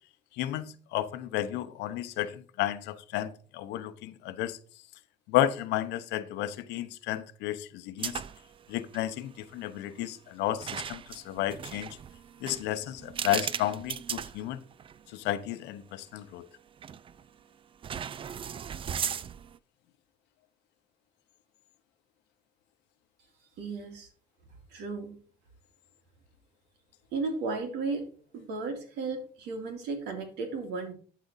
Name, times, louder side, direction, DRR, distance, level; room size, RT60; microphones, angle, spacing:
voice 1, 0.4-4.6 5.3-8.2 8.7-11.9 12.4-14.6 15.1-16.5, left 13 dB, 90° left, 0.8 m, -32 dB
sound 1, 8.0-8.5 8.8-9.0 10.6-15.0 15.5-15.6 16.8-17.2 17.8-19.6, right 8 dB, 30° right, 0.4 m, -37 dB
voice 2, 23.6-24.1 24.7-25.2 27.1-28.1 28.3-30.9, right 3 dB, 85° right, 2.4 m, -34 dB
12.0 x 4.2 x 4.1 m
cardioid pair, 110°, 17 cm